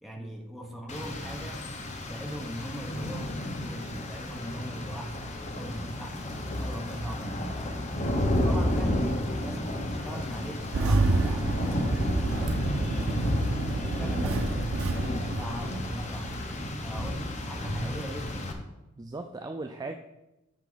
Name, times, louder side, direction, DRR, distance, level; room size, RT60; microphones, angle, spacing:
voice 1, 0.0-1.7 2.1-7.8 8.2-13.3 13.8-18.6, equal, ahead, 0 dB, 1.1 m, -40 dB
Rain, 0.9-18.5, left 1 dB, 35° left, 1.0 m, -32 dB
Engine starting, 10.7-16.3, right 2 dB, 90° right, 0.6 m, -29 dB
voice 2, 19.0-20.0, right 3 dB, 20° right, 5 dB, 0.4 m, -38 dB
9.3 x 5.8 x 4.0 m, 0.95 s
head